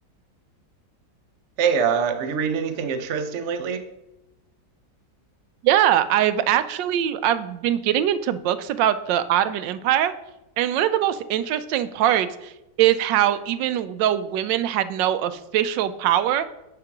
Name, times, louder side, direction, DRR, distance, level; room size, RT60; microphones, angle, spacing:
voice 1, 1.6-3.8, right 6 dB, 55° right, 8 dB, 0.8 m, -24 dB
voice 2, 5.6-10.1 10.6-12.5 12.8-16.4, right 11 dB, 85° right, 13 dB, 1.3 m, -22 dB
6.5 x 6.0 x 5.9 m, 0.91 s
omnidirectional pair, 1.9 m